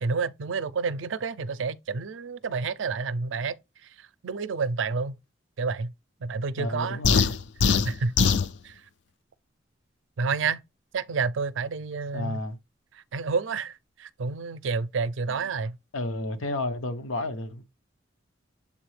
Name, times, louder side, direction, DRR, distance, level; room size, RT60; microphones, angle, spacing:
voice 1, 0.0-3.6 4.0-5.2 5.6-5.9 6.2-7.3 7.6-8.3 8.6-8.8 10.2-10.6 10.9-12.4 13.1-15.8, right 4 dB, 75° right, 0.5 m, -29 dB
voice 2, 6.6-7.4 12.1-12.6 15.3-15.5 15.9-17.6, left 1 dB, 90° left, 0.9 m, -32 dB
sound 1, 7.0-8.5, left 6 dB, 60° left, 0.4 m, -22 dB
7.3 x 4.0 x 3.2 m
head